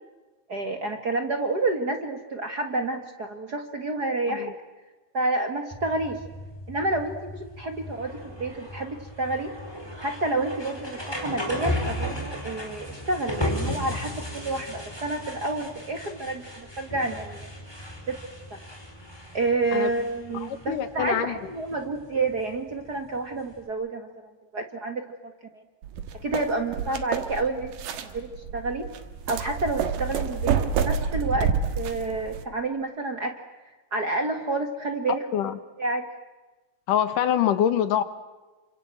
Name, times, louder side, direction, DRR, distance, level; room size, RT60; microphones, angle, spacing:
voice 1, 0.5-4.5 5.1-6.2 6.7-9.5 10.0-17.5 18.1-18.2 19.3-24.1 24.5-25.6 26.2-27.8 28.1-28.9 29.3-33.3 33.9-35.5 35.8-36.1, right 2 dB, 35° right, 6 dB, 1.8 m, -29 dB
sound 1, 5.7-23.7, left 1 dB, 5° left, 4.7 m, -36 dB
voice 2, 20.4-21.3 35.3-35.6 36.9-38.0, left 9 dB, 75° left, 12 dB, 2.9 m, -25 dB
sound 2, 25.8-32.4, right 7 dB, 80° right, 3.3 m, -28 dB
29.0 x 26.5 x 7.7 m, 1.2 s
omnidirectional pair, 3.8 m